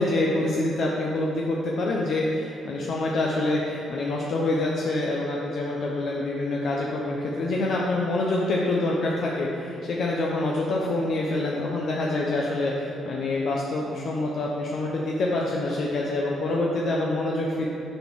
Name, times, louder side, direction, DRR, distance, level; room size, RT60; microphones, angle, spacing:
voice 1, 0.0-17.7, left 2 dB, 60° left, -3 dB, 0.7 m, -26 dB
6.5 x 4.3 x 6.3 m, 2.9 s
cardioid pair, 90°, 0 cm